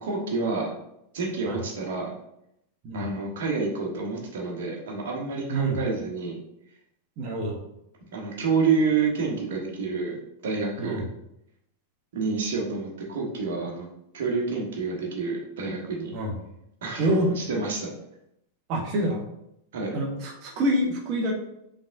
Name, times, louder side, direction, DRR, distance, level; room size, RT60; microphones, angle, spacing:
voice 1, 0.0-0.7 1.1-2.1 2.9-6.4 8.1-11.0 12.1-13.9 14.1-16.2 16.8-17.9 19.7-20.0, right 4 dB, 60° right, -1 dB, 1.2 m, -28 dB
voice 2, 7.2-7.6 10.8-11.0 16.1-16.3 17.0-17.3 18.7-19.2 19.9-21.3, right 1 dB, 40° right, 0 dB, 1.0 m, -26 dB
5.3 x 3.6 x 2.6 m, 0.79 s
figure-of-eight pair, 90°, 0 cm